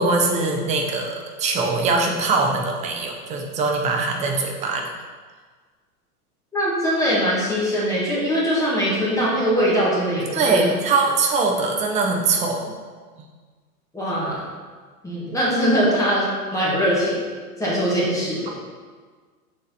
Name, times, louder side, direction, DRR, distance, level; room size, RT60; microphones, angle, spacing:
voice 1, 0.0-4.8 10.3-12.7, right 3 dB, 15° right, 1 dB, 0.6 m, -22 dB
voice 2, 6.5-10.6 13.9-14.4 15.0-17.2 17.6-18.5, equal, 5° left, -7 dB, 1.5 m, -22 dB
6.5 x 4.3 x 4.1 m, 1.5 s
hypercardioid pair, 130°, 46 cm